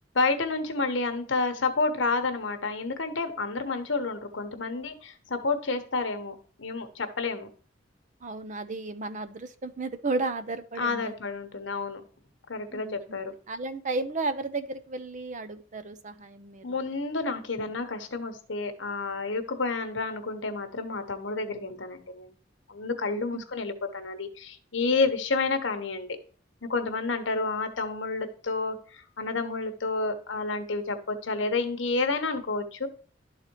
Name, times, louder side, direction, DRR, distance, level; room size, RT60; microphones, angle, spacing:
voice 1, 0.1-7.5 10.8-12.0 12.5-13.3 16.6-22.3 22.7-26.2 26.7-32.9, left 3 dB, 70° left, 6 dB, 1.1 m, -30 dB
voice 2, 8.2-11.1 12.7-13.2 13.5-16.6 23.1-23.4, right 3 dB, 40° right, 11 dB, 0.6 m, -33 dB
12.0 x 4.2 x 3.0 m, 0.42 s
head